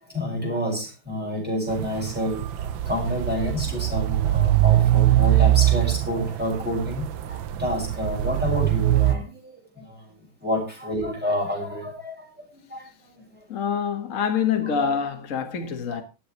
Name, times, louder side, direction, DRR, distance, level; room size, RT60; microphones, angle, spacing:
voice 1, 0.1-10.0 10.4-12.3 12.5-12.9 13.3-13.4 15.9-16.0, equal, 5° right, 6.3 m, -29 dB
sound 1, 1.7-9.1, right 14 dB, 70° right, 1.5 m, -22 dB
voice 2, 13.5-16.0, left 7 dB, 40° left, 1.8 m, -25 dB
20.5 x 8.0 x 3.2 m
omnidirectional pair, 2.3 m